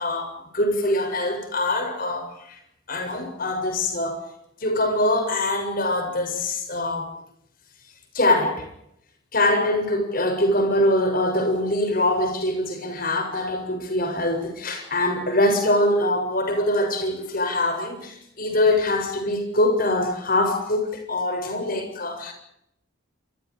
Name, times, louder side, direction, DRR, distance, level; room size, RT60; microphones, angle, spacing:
voice 1, 0.0-2.3 2.9-4.2 4.6-7.1 8.1-8.7 9.3-22.3, left 1 dB, 45° left, 7.4 m, -23 dB
28.5 x 27.0 x 5.0 m
head